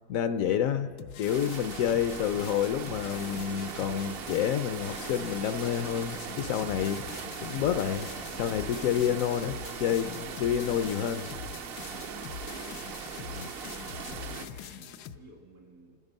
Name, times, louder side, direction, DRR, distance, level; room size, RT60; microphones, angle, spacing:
voice 1, 0.1-0.9 1.2-7.0 7.4-8.1 8.4-11.3 13.3-13.5, left 9 dB, 70° left, 10 dB, 0.9 m, -29 dB
sound 1, 1.0-15.2, left 8 dB, 90° left, 1.2 m, -44 dB
sound 2, 1.3-14.5, right 6 dB, 60° right, 0.6 m, -40 dB
voice 2, 13.0-16.0, equal, 75° right, 0 dB, 2.7 m, -53 dB
28.0 x 9.7 x 5.3 m, 2.2 s
omnidirectional pair, 1.7 m